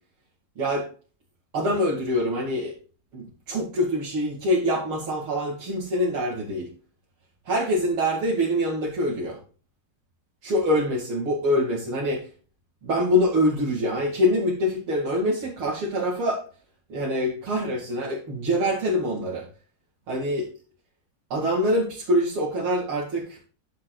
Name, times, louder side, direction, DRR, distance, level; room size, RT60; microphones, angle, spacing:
voice 1, 0.6-0.9 1.5-2.7 3.1-6.7 7.4-9.4 10.4-12.3 12.8-16.4 16.9-19.5 20.1-20.5 21.3-23.4, equal, 85° right, -4 dB, 3.2 m, -25 dB
10.5 x 10.5 x 2.4 m, 0.38 s
omnidirectional pair, 2.2 m